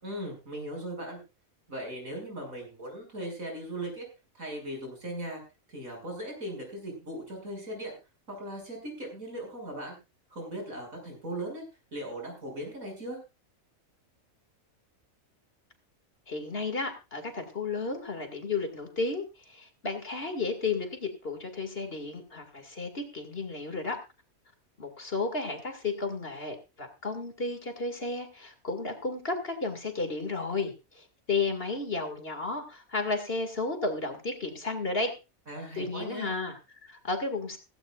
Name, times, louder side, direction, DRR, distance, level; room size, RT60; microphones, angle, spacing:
voice 1, 0.0-1.2 1.7-4.0 4.3-5.4 5.7-8.0 8.3-10.0 10.3-11.6 11.9-13.2 35.5-36.3, right 1 dB, 75° right, 1 dB, 6.8 m, -38 dB
voice 2, 16.3-24.0 24.8-35.1 35.8-37.6, left 3 dB, 45° left, 6 dB, 2.4 m, -33 dB
16.5 x 16.0 x 2.5 m, 0.28 s
omnidirectional pair, 1.5 m